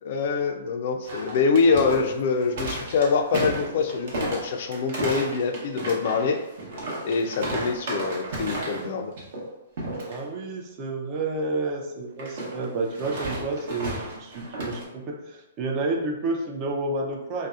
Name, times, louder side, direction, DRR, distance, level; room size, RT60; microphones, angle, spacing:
voice 1, 0.0-6.4 7.0-9.1, left 4 dB, 55° left, 5 dB, 0.3 m, -24 dB
sound 1, 1.0-8.9 9.2-9.5 9.8-10.1 12.2-14.8, right 1 dB, 55° right, 0.8 m, -33 dB
voice 2, 10.1-17.5, right 2 dB, 35° right, 2 dB, 0.4 m, -30 dB
2.6 x 2.0 x 2.3 m, 0.99 s
hypercardioid pair, 135°, 0 cm